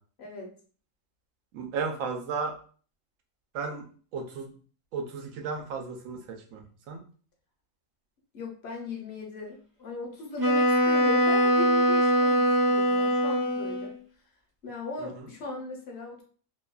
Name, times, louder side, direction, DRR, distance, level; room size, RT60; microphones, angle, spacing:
voice 1, 0.2-0.5 8.3-14.0 14.6-16.2, left 3 dB, 60° left, 0 dB, 0.9 m, -38 dB
voice 2, 1.5-2.5 3.5-3.8 4.1-4.5 4.9-6.2 6.5-6.6 6.9-7.0, right 5 dB, 80° right, 3 dB, 1.0 m, -33 dB
Wind instrument woodwind instrument, 10.4-14.0, equal, 25° right, 0.5 m, -23 dB
2.8 x 2.2 x 2.3 m, 0.42 s
omnidirectional pair, 1.4 m